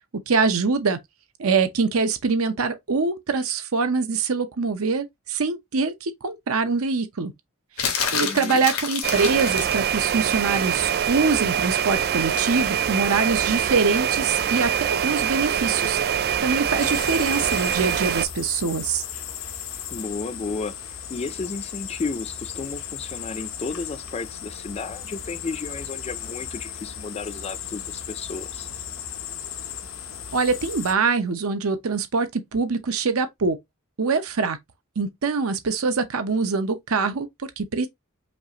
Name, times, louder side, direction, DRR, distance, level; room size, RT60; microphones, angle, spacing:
voice 1, 0.3-1.0 1.4-7.3 8.1-19.0 30.3-33.6 34.0-34.6 35.0-37.3 37.6-37.9, right 4 dB, 80° right, 0.7 m, -24 dB
sound 1, 7.8-9.9 12.4-12.6, left 6 dB, 85° left, 1.2 m, -27 dB
voice 2, 8.2-8.7 19.9-20.8 21.1-28.7, left 4 dB, 30° left, 0.4 m, -33 dB
sound 2, 9.0-18.3, right 8 dB, 45° right, 0.3 m, -24 dB
sound 3, 16.8-30.9, left 8 dB, 65° left, 0.7 m, -36 dB
5.2 x 2.5 x 2.8 m
head